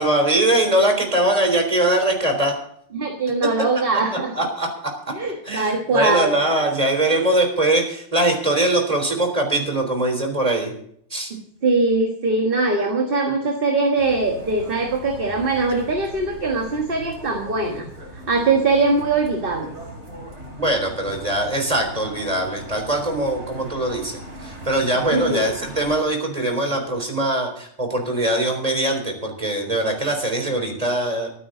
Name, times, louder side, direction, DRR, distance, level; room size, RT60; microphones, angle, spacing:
voice 1, 0.0-2.5 4.3-4.9 5.4-10.7 11.1-11.3 20.6-31.3, right 1 dB, 35° right, 3 dB, 3.9 m, -22 dB
voice 2, 2.9-4.3 5.1-6.3 11.3-17.9 18.3-19.7 25.1-25.4, right 3 dB, 50° right, 2 dB, 1.8 m, -21 dB
sound 1, 14.0-26.0, right 1 dB, 75° right, 4.3 m, -39 dB
23.0 x 9.6 x 3.9 m, 0.65 s
omnidirectional pair, 1.2 m